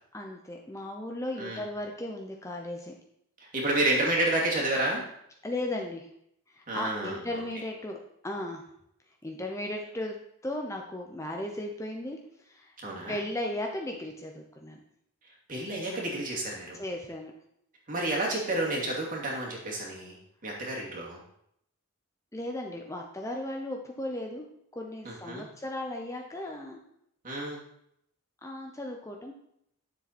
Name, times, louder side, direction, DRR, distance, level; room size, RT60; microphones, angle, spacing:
voice 1, 0.1-2.9 5.4-6.1 6.5-8.6 9.2-12.7 13.1-14.8 16.8-17.3 22.3-24.5 24.7-26.8 28.4-29.3, left 1 dB, 15° left, 2 dB, 0.8 m, -36 dB
voice 2, 3.4-5.0 6.7-7.2 12.8-13.2 15.5-16.8 17.9-20.2 20.4-21.2 25.0-25.5 27.2-27.6, right 1 dB, 40° right, -3 dB, 2.5 m, -30 dB
9.8 x 7.3 x 4.3 m, 0.74 s
head